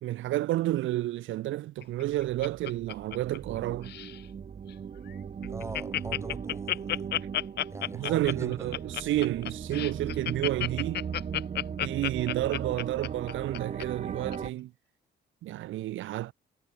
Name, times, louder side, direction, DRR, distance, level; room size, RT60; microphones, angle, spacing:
voice 1, 0.0-3.9 7.9-11.0 11.8-14.7 15.4-16.3, right 15 dB, 75° right, 0.6 m, -30 dB
Laughter, 1.8-3.6 3.8-4.2 4.7-4.8 5.1-5.2 5.4-13.8 14.3-14.4, left 12 dB, 55° left, 0.5 m, -32 dB
sound 1, 2.6-14.5, right 7 dB, 35° right, 0.7 m, -38 dB
voice 2, 5.5-7.1 7.7-8.7, right 2 dB, 15° right, 5.9 m, -41 dB
cardioid pair, 90°, 20 cm